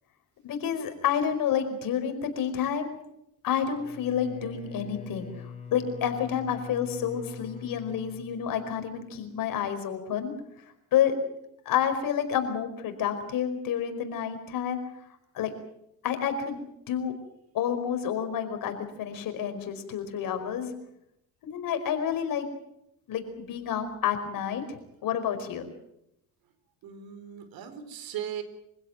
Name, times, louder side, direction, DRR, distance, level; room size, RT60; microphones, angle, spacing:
voice 1, 0.4-3.0 3.4-10.3 10.9-11.1 11.6-14.8 15.3-15.5 16.0-16.6 16.9-17.1 17.5-20.7 21.4-22.5 23.1-25.7, left 8 dB, 60° left, 7 dB, 5.0 m, -29 dB
Bowed string instrument, 3.7-9.0, left 6 dB, 20° left, 4.4 m, -43 dB
voice 2, 26.8-28.4, right 9 dB, 70° right, 11 dB, 4.0 m, -38 dB
25.5 x 16.5 x 9.2 m, 0.79 s
cardioid pair, 115°, 37 cm